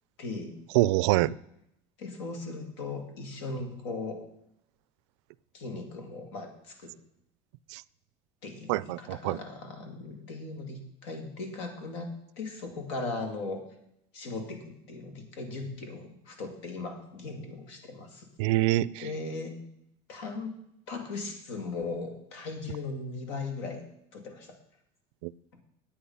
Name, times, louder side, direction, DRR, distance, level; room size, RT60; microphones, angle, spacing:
voice 1, 0.2-0.6 2.0-4.2 5.5-6.9 8.4-13.6 14.1-18.3 19.0-19.6 20.1-20.5 20.9-23.8 24.1-24.6, left 3 dB, 85° left, 5 dB, 2.4 m, -38 dB
voice 2, 0.7-1.3 7.7-7.8 8.7-9.4 18.4-19.0 25.2-25.3, right 17 dB, 90° right, 20 dB, 0.4 m, -25 dB
10.0 x 8.6 x 5.6 m, 0.76 s
cardioid pair, 150°, 14 cm